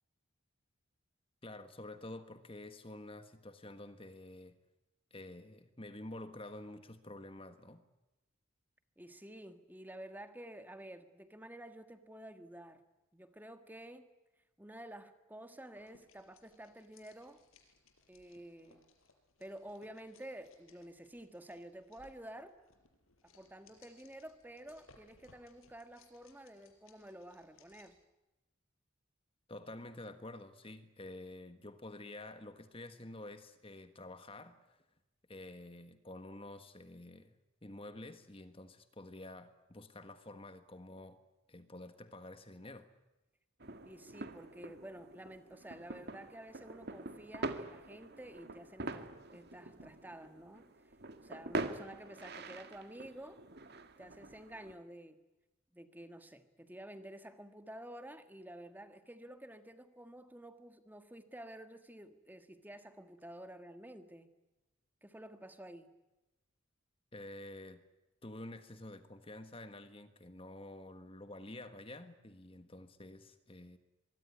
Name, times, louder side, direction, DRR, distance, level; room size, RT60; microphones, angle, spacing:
voice 1, 1.4-4.6 5.1-7.8 29.5-34.8 35.3-37.3 37.6-41.2 41.5-42.9 67.1-67.8 68.2-73.8, left 1 dB, 25° left, 10 dB, 1.5 m, -49 dB
voice 2, 9.0-12.8 13.1-14.1 14.6-17.4 18.1-18.9 19.4-22.5 23.2-28.0 43.9-50.7 51.2-53.4 54.0-55.2 55.7-64.3 65.0-65.9, right 1 dB, 10° right, 8 dB, 1.7 m, -51 dB
sound 1, 15.8-28.0, left 3 dB, 75° left, 5.2 m, -67 dB
sound 2, 43.6-54.7, right 2 dB, 50° right, 2.0 m, -45 dB
24.5 x 22.0 x 9.7 m, 1.0 s
head